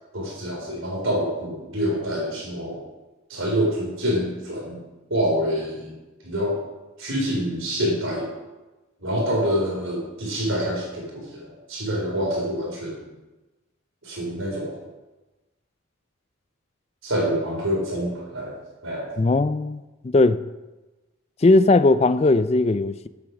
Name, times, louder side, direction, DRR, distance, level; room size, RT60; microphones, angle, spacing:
voice 1, 0.1-2.8 3.3-4.8 5.1-6.0 6.2-6.6 7.0-8.3 9.0-13.1 14.0-14.8 17.0-18.6 18.8-19.1, equal, 70° right, 4.2 m, -26 dB
voice 2, 19.2-20.4 21.4-23.1, left 2 dB, 30° left, 0.4 m, -18 dB
8.4 x 8.0 x 6.3 m
head